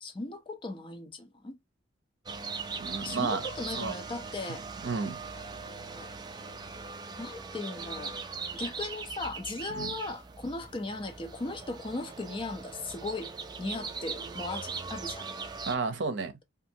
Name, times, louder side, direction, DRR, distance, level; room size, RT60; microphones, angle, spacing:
voice 1, 0.0-1.6 3.0-4.6 5.3-6.1 7.2-8.1 8.5-13.3 13.6-15.3, left 2 dB, 30° left, 0.5 m, -38 dB
sound 1, 2.3-15.8, right 4 dB, 25° right, 0.3 m, -40 dB
voice 2, 2.8-3.4 3.8-3.9 4.8-5.2 9.7-9.9 15.7-16.3, right 4 dB, 75° right, 0.6 m, -31 dB
2.6 x 2.5 x 2.7 m
head